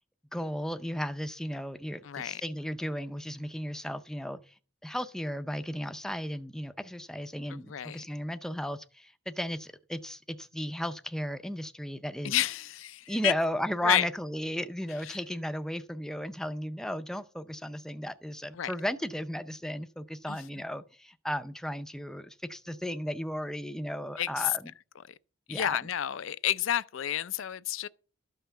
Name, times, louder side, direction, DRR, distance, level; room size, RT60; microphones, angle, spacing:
voice 1, 0.3-4.5 4.8-12.4 13.1-24.6 25.5-25.8, equal, 5° left, 0.5 m, -35 dB
voice 2, 2.0-2.4 7.5-8.0 12.2-13.3 13.8-14.1 15.0-15.2 18.5-18.7 20.3-20.4 24.2-24.5 25.5-27.9, left 11 dB, 80° left, 0.5 m, -30 dB
12.5 x 5.7 x 7.1 m
head